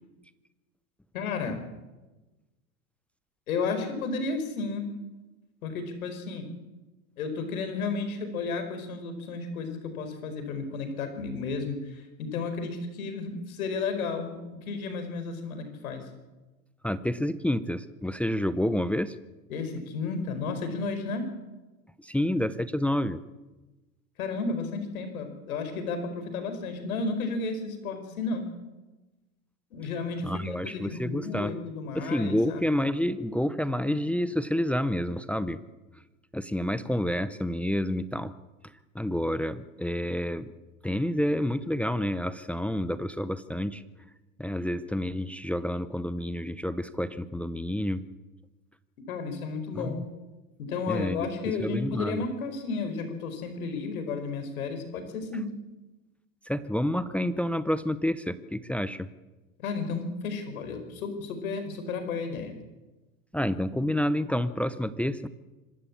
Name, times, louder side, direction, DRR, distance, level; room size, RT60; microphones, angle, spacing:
voice 1, 1.1-1.6 3.5-4.9 5.6-6.5 7.2-14.4 14.7-16.0 19.5-21.3 24.2-28.4 29.7-32.6 49.1-50.0 50.6-55.5 59.6-62.6, left 4 dB, 80° left, 8 dB, 5.0 m, -33 dB
voice 2, 16.8-19.2 22.0-23.2 30.2-31.5 31.9-35.6 36.3-38.3 38.6-40.5 40.8-43.8 44.4-48.0 49.7-49.9 50.9-52.2 56.5-59.1 63.3-65.3, left 1 dB, 5° left, 14 dB, 0.6 m, -29 dB
25.5 x 13.0 x 8.6 m, 1.1 s
supercardioid pair, 115°, 42 cm